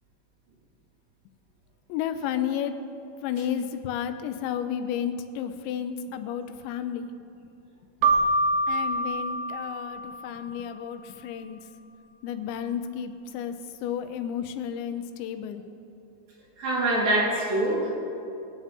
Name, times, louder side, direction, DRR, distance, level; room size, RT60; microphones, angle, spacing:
voice 1, 1.9-2.7 3.2-7.1 8.7-11.7 12.2-13.6 13.8-15.6, left 9 dB, 85° left, 8 dB, 2.9 m, -32 dB
Keyboard (musical), 8.0-10.6, right 2 dB, 90° right, 2.0 m, -26 dB
voice 2, 16.6-17.9, right 1 dB, 55° right, -8 dB, 5.0 m, -24 dB
22.0 x 9.5 x 3.6 m, 2.7 s
omnidirectional pair, 5.1 m